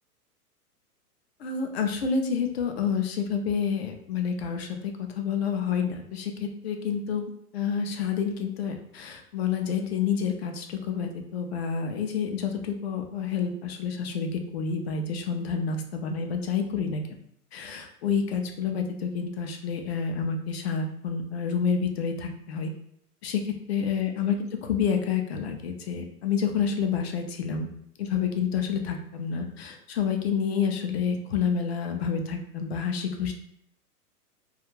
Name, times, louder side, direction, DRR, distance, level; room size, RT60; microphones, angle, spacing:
voice 1, 1.4-4.8 5.2-6.3 6.6-17.0 17.5-22.7 23.2-23.4 23.7-24.4 24.6-27.7 28.0-33.3, left 6 dB, 45° left, 4 dB, 0.4 m, -28 dB
2.3 x 2.3 x 3.0 m, 0.70 s
figure-of-eight pair, 115°, 46 cm